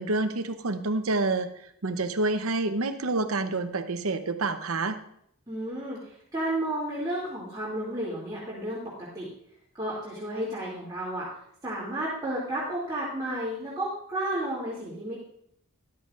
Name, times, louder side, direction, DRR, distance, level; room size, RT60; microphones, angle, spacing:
voice 1, 0.0-1.5 1.8-5.0, right 2 dB, 70° right, 9 dB, 0.8 m, -28 dB
voice 2, 5.5-9.3 9.7-11.3 11.6-15.2, right 1 dB, 15° right, -8 dB, 2.6 m, -32 dB
14.0 x 11.5 x 2.5 m, 0.69 s
head